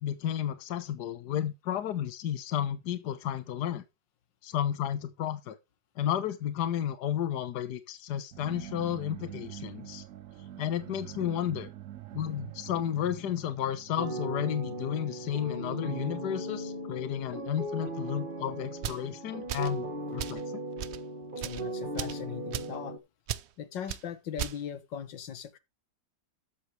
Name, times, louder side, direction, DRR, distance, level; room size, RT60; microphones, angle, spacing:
voice 1, 0.0-3.8 4.4-5.6 6.0-10.0 10.6-11.7 12.1-19.9 20.1-20.4, left 10 dB, 70° left, 1.5 m, -32 dB
sound 1, 8.3-16.1, right 12 dB, 60° right, 0.9 m, -46 dB
sound 2, 14.0-23.0, right 1 dB, 30° right, 1.8 m, -37 dB
sound 3, 18.8-19.1 19.5-19.8 20.2-20.4 20.8-21.0 21.4-21.6 22.0-22.2 22.5-22.8 23.3-23.5 23.9-24.0 24.4-24.6, right 11 dB, 80° right, 0.6 m, -36 dB
voice 2, 21.4-23.0 23.6-25.6, left 9 dB, 85° left, 1.9 m, -39 dB
13.5 x 8.0 x 3.2 m
omnidirectional pair, 1.9 m